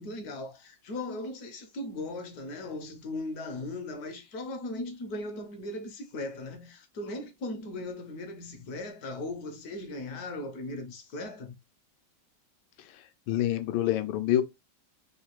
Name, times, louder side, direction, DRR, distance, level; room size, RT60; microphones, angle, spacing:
voice 1, 0.0-11.5, left 2 dB, 65° left, 1.1 m, -38 dB
voice 2, 13.3-14.4, left 12 dB, 90° left, 1.3 m, -26 dB
3.7 x 2.4 x 2.9 m
omnidirectional pair, 2.1 m